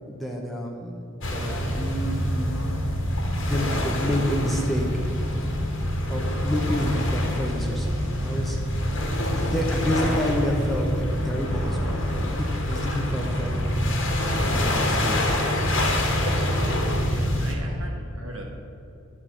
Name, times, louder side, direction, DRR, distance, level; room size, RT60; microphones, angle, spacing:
voice 1, 0.1-1.0 1.3-2.5 3.3-5.0 6.1-8.6 9.3-13.8 14.6-15.3, equal, ahead, -1 dB, 0.7 m, -29 dB
sound 1, 1.2-17.5, left 1 dB, 60° left, 1.3 m, -26 dB
voice 2, 14.2-14.7 17.1-18.4, right 1 dB, 65° right, 0 dB, 1.5 m, -41 dB
10.5 x 3.7 x 7.2 m, 2.8 s
head